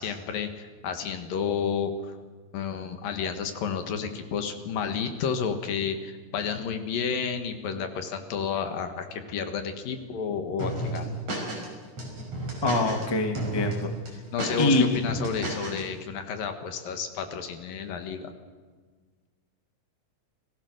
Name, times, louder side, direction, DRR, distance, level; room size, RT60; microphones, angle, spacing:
voice 1, 0.0-2.1 2.5-11.2 14.3-18.3, left 6 dB, 70° left, 6 dB, 3.4 m, -31 dB
sound 1, 10.6-11.7 12.0-13.1 13.4-13.7 14.1-15.8, right 1 dB, 40° right, 6.6 m, -32 dB
voice 2, 12.6-13.9 14.6-15.0, left 2 dB, 15° left, 4 dB, 1.0 m, -24 dB
29.5 x 19.5 x 6.6 m, 1.5 s
omnidirectional pair, 4.3 m